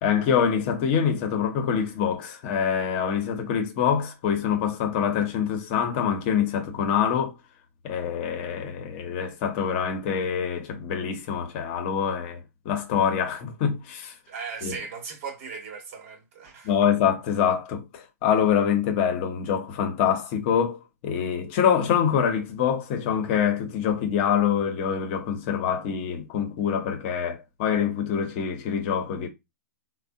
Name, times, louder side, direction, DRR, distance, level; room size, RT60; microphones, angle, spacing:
voice 1, 0.0-7.3 7.8-14.1 14.6-14.8 16.6-29.3, left 8 dB, 45° left, 0.7 m, -25 dB
voice 2, 14.3-16.7, right 5 dB, 55° right, 1.1 m, -37 dB
3.3 x 2.1 x 2.5 m
hypercardioid pair, 125°, 9 cm